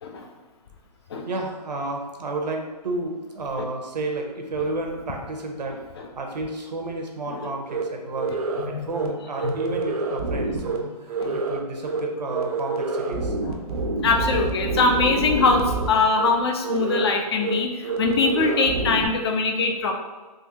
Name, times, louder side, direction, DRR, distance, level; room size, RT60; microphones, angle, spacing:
voice 1, 1.3-5.7 6.1-8.3 8.6-13.3, right 2 dB, 90° right, 2 dB, 0.8 m, -31 dB
sound 1, 7.7-7.8 8.2-8.7 8.9-9.1 9.4-10.8 11.1-11.6 11.9-12.0 12.3-15.9 16.2-16.3 16.6-17.1 17.4-17.5 17.8-19.1, right 3 dB, 65° right, 0.5 m, -27 dB
voice 2, 8.7-9.1 9.4-9.5 10.8-10.9 11.2-11.4 13.4-13.5 14.0-19.9, left 4 dB, 40° left, 3 dB, 0.4 m, -22 dB
3.7 x 2.1 x 2.8 m, 1.3 s
hypercardioid pair, 150°, 21 cm